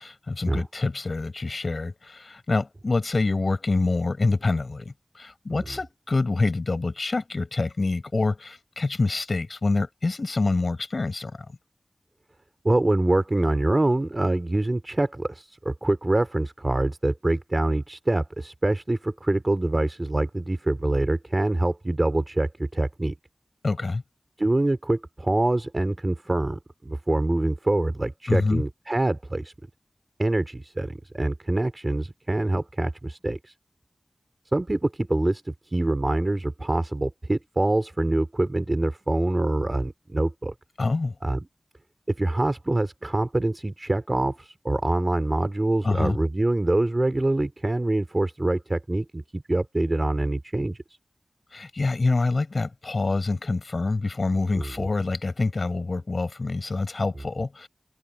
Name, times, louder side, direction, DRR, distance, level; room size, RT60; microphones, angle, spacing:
voice 1, 0.0-11.5 23.6-24.0 28.3-28.6 40.8-41.1 45.8-46.2 51.5-57.7, left 3 dB, 65° left, 4.8 m, -26 dB
voice 2, 12.6-23.1 24.4-29.5 30.2-33.5 34.5-40.5 41.2-41.4 42.1-50.8 54.6-54.9, right 2 dB, 35° right, 3.3 m, -25 dB
open air
wide cardioid pair, 60°, 0 cm